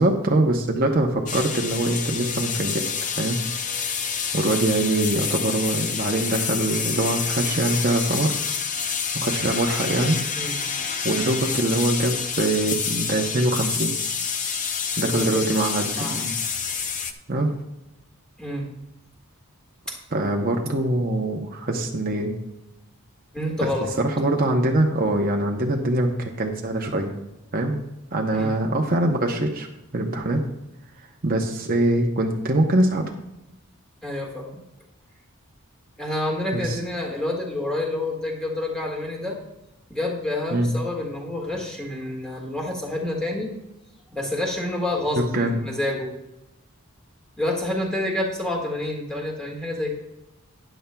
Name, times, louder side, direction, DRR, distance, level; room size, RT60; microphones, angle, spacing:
voice 1, 0.0-3.4 4.3-8.3 9.1-10.2 11.0-13.9 15.0-16.3 17.3-17.5 20.1-22.3 23.6-27.1 27.5-27.8 28.1-29.7 29.9-30.4 31.2-33.0 36.5-36.8 40.5-40.7 45.2-45.7, right 1 dB, 40° right, 1 dB, 0.8 m, -23 dB
sound 1, 1.3-17.1, left 6 dB, 35° left, 0.6 m, -28 dB
voice 2, 15.9-16.3 18.4-18.7 19.9-20.0 23.3-23.9 28.3-28.5 34.0-34.6 36.0-39.4 39.9-43.5 44.1-46.1 47.4-49.9, left 1 dB, 5° left, -1 dB, 1.7 m, -28 dB
12.5 x 10.0 x 2.3 m, 0.96 s
head